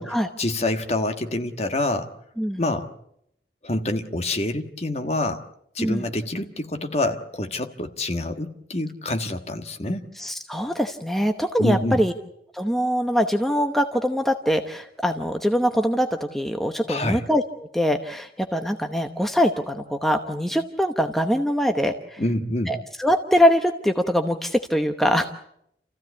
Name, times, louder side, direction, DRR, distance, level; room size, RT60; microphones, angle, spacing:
voice 1, 0.4-2.1 2.6-2.9 3.6-5.4 5.7-10.1 11.6-12.0 16.9-17.2 22.2-22.7, left 1 dB, 35° left, 6 dB, 1.5 m, -26 dB
voice 2, 10.2-12.1 12.5-22.2 22.7-25.3, equal, ahead, 6 dB, 0.9 m, -23 dB
28.5 x 15.5 x 8.4 m, 0.76 s
head